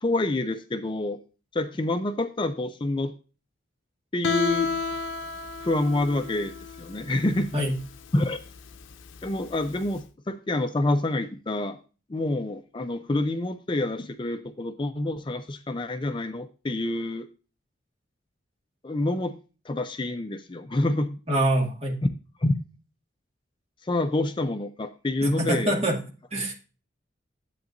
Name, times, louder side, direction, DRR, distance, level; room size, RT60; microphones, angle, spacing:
voice 1, 0.0-1.2 1.5-3.1 4.1-4.8 5.6-7.6 8.1-8.4 9.2-11.8 12.1-17.3 18.8-19.3 19.6-21.2 22.4-22.5 23.8-25.8, left 2 dB, 25° left, 8 dB, 0.4 m, -27 dB
Guitar, 4.2-9.9, left 5 dB, 80° left, 0.6 m, -32 dB
voice 2, 21.3-22.0 25.2-26.0 26.3-26.5, right 1 dB, 30° right, 0 dB, 2.2 m, -25 dB
10.5 x 8.1 x 2.6 m, 0.34 s
head